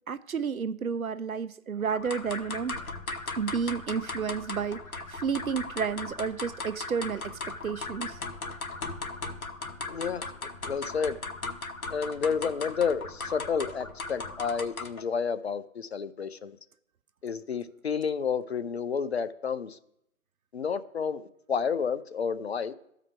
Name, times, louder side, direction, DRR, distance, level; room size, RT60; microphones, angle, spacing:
voice 1, 0.1-2.8 3.4-4.8 5.1-8.2, right 6 dB, 85° right, 0.7 m, -31 dB
sound 1, 1.9-15.1, left 3 dB, 90° left, 1.1 m, -38 dB
voice 2, 9.9-10.2 10.6-11.2 11.9-16.6 17.2-19.8 20.5-21.2 21.5-22.7, left 6 dB, 50° left, 0.7 m, -30 dB
13.5 x 4.9 x 4.6 m
figure-of-eight pair, 145°, 42 cm